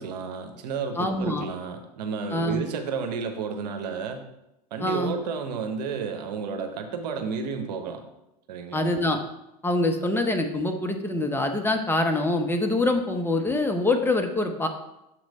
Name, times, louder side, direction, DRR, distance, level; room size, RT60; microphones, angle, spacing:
voice 1, 0.0-4.2 4.7-8.0 8.5-8.9 10.0-10.1, right 5 dB, 85° right, 6 dB, 0.9 m, -32 dB
voice 2, 1.0-1.5 2.3-2.6 4.8-5.2 8.7-9.2 9.6-14.7, left 2 dB, 10° left, 5 dB, 0.7 m, -25 dB
6.8 x 3.1 x 5.3 m, 0.87 s
hypercardioid pair, 100°, 21 cm